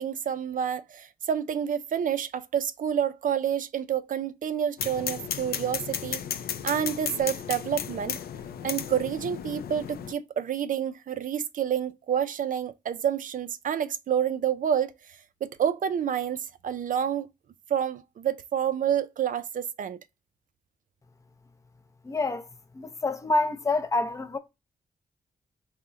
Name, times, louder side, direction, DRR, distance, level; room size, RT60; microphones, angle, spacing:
voice 1, 0.0-6.2 6.6-8.2 8.6-17.3 17.7-20.0, right 9 dB, 60° right, 0.4 m, -28 dB
sound 1, 4.8-10.1, left 9 dB, 90° left, 0.4 m, -34 dB
voice 2, 22.0-22.5 22.7-24.4, left 2 dB, 20° left, 0.5 m, -27 dB
3.5 x 2.1 x 3.8 m
wide cardioid pair, 110°, 15 cm